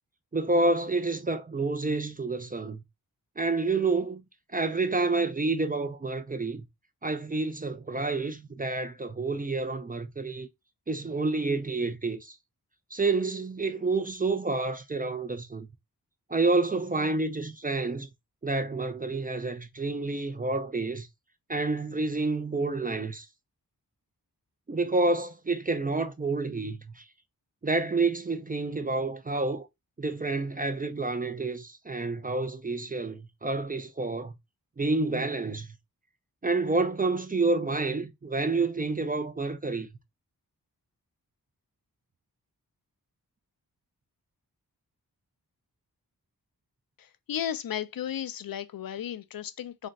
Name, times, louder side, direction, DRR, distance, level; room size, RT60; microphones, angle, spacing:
voice 1, 0.3-2.8 3.4-4.2 4.5-6.6 7.0-10.5 10.9-12.4 12.9-15.7 16.3-18.1 18.4-21.1 21.5-23.3 24.7-27.0 27.6-29.7 30.0-34.3 34.8-35.7 36.4-39.9, right 3 dB, 25° right, 0.4 m, -29 dB
voice 2, 47.0-49.9, left 10 dB, 65° left, 0.5 m, -34 dB
2.5 x 2.1 x 3.9 m
cardioid pair, 50°, 38 cm